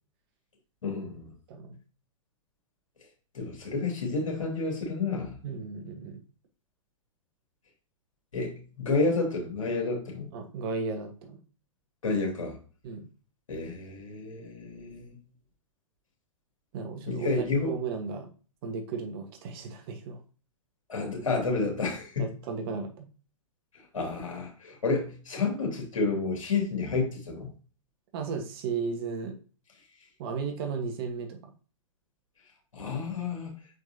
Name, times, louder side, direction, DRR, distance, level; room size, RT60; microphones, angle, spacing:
voice 1, 0.8-1.3 3.3-5.4 8.3-10.3 12.0-12.6 13.5-15.2 17.1-17.7 20.9-22.4 23.7-27.5 32.7-33.5, left 3 dB, 70° left, 2.5 m, -30 dB
voice 2, 5.4-6.2 10.3-11.4 12.8-13.0 16.7-18.3 18.6-20.2 22.2-23.1 28.1-29.4 30.2-31.5, right 5 dB, 45° right, 1.5 m, -35 dB
6.3 x 5.2 x 2.8 m
figure-of-eight pair, 110°, 17 cm